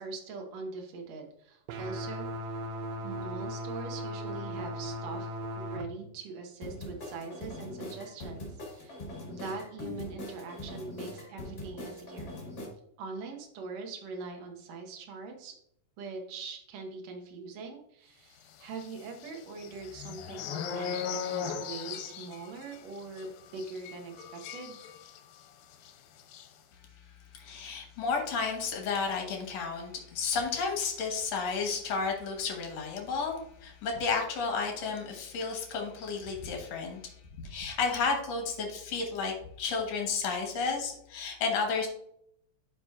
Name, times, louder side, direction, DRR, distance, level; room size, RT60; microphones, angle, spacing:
voice 1, 0.0-2.3 3.0-9.0 9.2-12.3 13.0-15.5 16.0-24.8, right 4 dB, 70° right, 2 dB, 1.7 m, -42 dB
sound 1, 1.7-5.8, equal, 90° right, 2.5 m, -37 dB
sound 2, 6.6-12.7, left 1 dB, 45° left, 1.3 m, -42 dB
sound 3, 18.7-25.4 25.7-25.9 26.2-26.5, left 7 dB, 85° left, 2.3 m, -39 dB
voice 2, 27.3-37.0 37.4-41.9, left 5 dB, 65° left, 2 dB, 1.8 m, -32 dB
11.0 x 5.0 x 2.4 m, 0.72 s
omnidirectional pair, 4.3 m